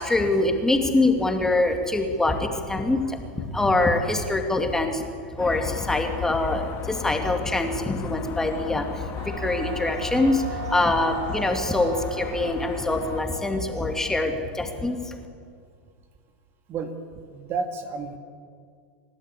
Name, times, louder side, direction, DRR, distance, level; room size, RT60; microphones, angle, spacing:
voice 1, 0.0-5.0 5.3-15.2, left 2 dB, 10° left, 3 dB, 2.5 m, -24 dB
sound 1, 5.4-13.2, left 8 dB, 40° left, 1.9 m, -35 dB
Wind instrument woodwind instrument, 9.2-14.6, right 7 dB, 55° right, 1.3 m, -38 dB
voice 2, 17.3-18.2, right 5 dB, 40° right, 6 dB, 2.1 m, -30 dB
29.0 x 12.0 x 8.5 m, 2.1 s
hypercardioid pair, 110°, 6 cm